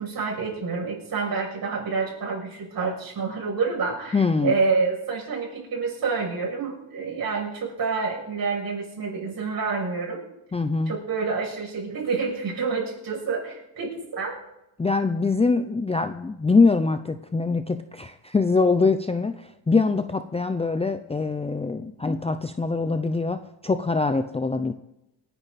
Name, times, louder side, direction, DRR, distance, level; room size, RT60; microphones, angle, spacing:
voice 1, 0.0-10.2 10.9-14.3, right 4 dB, 45° right, -3 dB, 7.2 m, -28 dB
voice 2, 4.1-4.5 10.5-10.9 14.8-24.7, left 4 dB, 15° left, 9 dB, 0.5 m, -23 dB
27.5 x 10.5 x 4.2 m, 0.88 s
cardioid pair, 135°, 47 cm